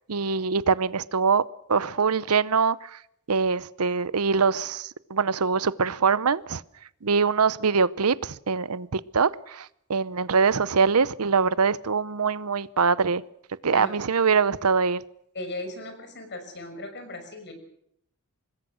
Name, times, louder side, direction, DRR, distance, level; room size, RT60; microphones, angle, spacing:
voice 1, 0.1-1.4 1.7-3.0 3.3-6.6 7.0-13.2 13.6-15.0, right 5 dB, 85° right, 0.8 m, -23 dB
voice 2, 15.3-17.5, left 1 dB, 55° left, 5.9 m, -37 dB
25.5 x 20.5 x 6.3 m
head